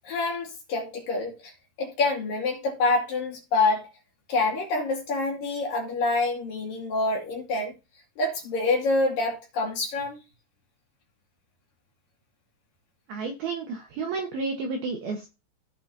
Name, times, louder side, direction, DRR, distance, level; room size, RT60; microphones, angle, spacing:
voice 1, 0.0-1.5 1.8-3.9 4.3-7.7 8.2-10.2, left 3 dB, 50° left, 3.4 m, -26 dB
voice 2, 13.1-15.3, right 4 dB, 70° right, 2.5 m, -31 dB
16.5 x 5.7 x 2.8 m
omnidirectional pair, 5.9 m